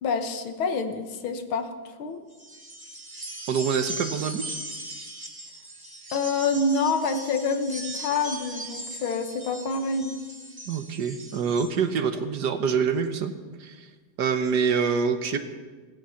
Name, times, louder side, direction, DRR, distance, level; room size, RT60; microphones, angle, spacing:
voice 1, 0.0-1.7 2.0-2.2 6.1-10.2, left 4 dB, 85° left, 8 dB, 2.1 m, -27 dB
sound 1, 2.3-11.7, right 1 dB, 10° right, 1.9 m, -39 dB
voice 2, 3.5-4.6 10.7-13.3 13.6-13.9 14.2-15.4, right 6 dB, 60° right, 9 dB, 1.4 m, -26 dB
16.0 x 15.5 x 5.8 m, 1.4 s
omnidirectional pair, 2.2 m